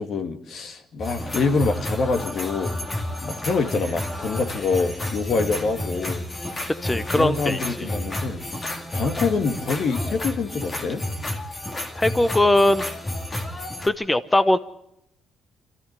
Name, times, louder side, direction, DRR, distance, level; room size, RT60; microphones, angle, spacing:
voice 1, 0.0-2.8 3.2-6.2 6.9-8.4 8.9-11.0, left 4 dB, 60° left, 7 dB, 2.1 m, -25 dB
sound 1, 1.0-13.9, left 1 dB, 30° left, 2.3 m, -31 dB
voice 2, 6.8-7.6 12.0-12.8 13.9-14.6, left 1 dB, 15° left, 13 dB, 0.7 m, -20 dB
25.0 x 14.0 x 8.0 m, 0.81 s
cardioid pair, 90°, 0 cm